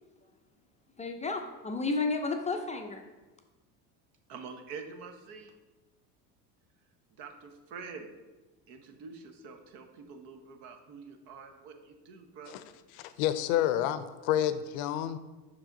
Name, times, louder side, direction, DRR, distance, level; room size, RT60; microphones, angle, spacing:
voice 1, 1.0-3.0, left 3 dB, 15° left, 4 dB, 0.4 m, -32 dB
voice 2, 4.3-5.5 7.2-8.1 8.7-12.6, right 5 dB, 60° right, 6 dB, 1.0 m, -46 dB
voice 3, 13.0-15.2, left 11 dB, 65° left, 13 dB, 0.6 m, -29 dB
5.9 x 4.8 x 3.8 m, 1.2 s
hypercardioid pair, 75°, 46 cm